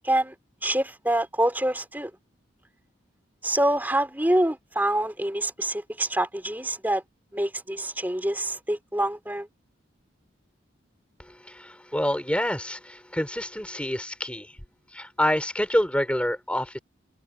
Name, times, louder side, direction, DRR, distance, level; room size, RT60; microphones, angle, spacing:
voice 1, 0.0-0.3 0.6-2.1 3.4-7.0 7.3-9.5, right 1 dB, 10° right, 3.3 m, -26 dB
voice 2, 11.2-14.6 14.9-16.8, equal, 5° left, 5.0 m, -27 dB
head